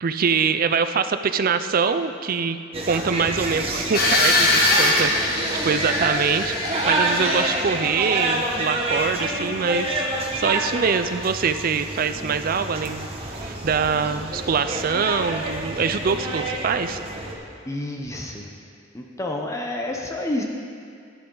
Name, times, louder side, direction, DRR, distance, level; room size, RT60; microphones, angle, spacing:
voice 1, 0.0-10.0 10.3-17.0, right 5 dB, 45° right, 10 dB, 0.4 m, -24 dB
sound 1, 2.7-17.3, right 1 dB, 30° right, 1.2 m, -28 dB
sound 2, 3.9-7.7, left 2 dB, 50° left, 1.7 m, -22 dB
voice 2, 17.6-18.5 18.9-20.4, left 1 dB, 15° left, 0 dB, 0.7 m, -29 dB
12.0 x 10.0 x 3.9 m, 2.3 s
head